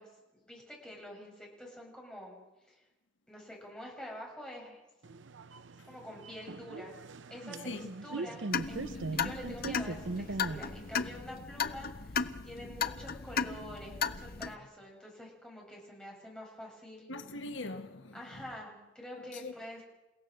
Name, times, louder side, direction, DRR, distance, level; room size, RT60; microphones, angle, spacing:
voice 1, 0.0-2.4 2.7-2.8 3.3-4.8 5.9-7.0 7.3-7.7 8.0-17.1 18.1-19.8, left 1 dB, 5° left, 7.0 m, -47 dB
sound 1, 5.0-11.1, right 3 dB, 70° right, 0.7 m, -41 dB
voice 2, 7.6-7.9 12.8-12.9 17.1-18.5 19.1-19.5, left 2 dB, 80° left, 1.4 m, -42 dB
sound 2, 8.5-14.5, left 6 dB, 55° left, 0.9 m, -35 dB
29.5 x 17.0 x 6.6 m
head